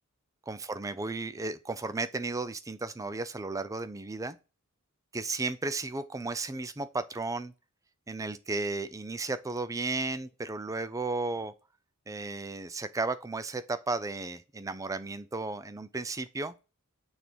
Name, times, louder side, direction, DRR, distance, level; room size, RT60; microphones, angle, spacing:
voice 1, 0.5-4.4 5.1-7.5 8.1-11.5 12.1-16.5, right 3 dB, 15° right, 0.4 m, -34 dB
6.3 x 3.5 x 4.5 m
head